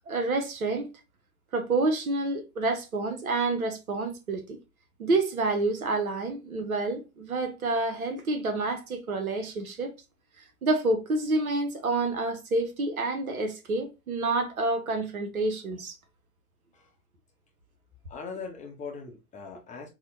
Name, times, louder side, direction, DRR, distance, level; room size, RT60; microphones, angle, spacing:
voice 1, 0.1-0.9 1.5-4.6 5.0-9.9 10.6-15.9, right 2 dB, 80° right, 0.7 m, -28 dB
voice 2, 18.1-19.9, left 5 dB, 20° left, 0.6 m, -40 dB
2.8 x 2.1 x 3.1 m
figure-of-eight pair, 85°, 42 cm